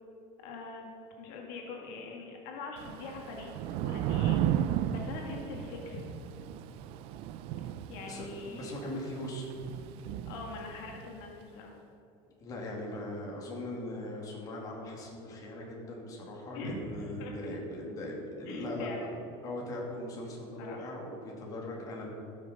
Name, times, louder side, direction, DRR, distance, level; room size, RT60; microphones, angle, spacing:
voice 1, 0.4-0.9 1.2-3.5 3.8-6.0 7.9-8.8 10.2-11.8 16.5-17.3 18.5-19.1 20.6-20.9, left 3 dB, 75° left, 0 dB, 1.8 m, -43 dB
Thunder / Rain, 2.8-11.1, right 11 dB, 50° right, 0.4 m, -34 dB
voice 2, 8.0-9.5 12.4-18.9 19.4-22.1, left 1 dB, 30° left, -2 dB, 2.2 m, -40 dB
14.0 x 6.5 x 5.3 m, 2.9 s
cardioid pair, 160°, 12 cm